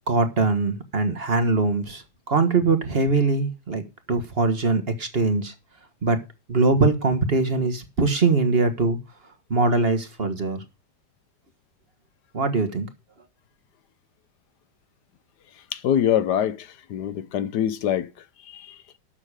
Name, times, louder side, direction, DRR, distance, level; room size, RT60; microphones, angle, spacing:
voice 1, 0.1-5.5 6.0-6.2 6.5-9.0 9.5-10.6 12.3-12.9, right 3 dB, 30° right, 1.5 m, -22 dB
voice 2, 15.7-18.1 18.4-18.8, left 10 dB, 65° left, 1.2 m, -24 dB
12.0 x 7.5 x 4.9 m
omnidirectional pair, 2.2 m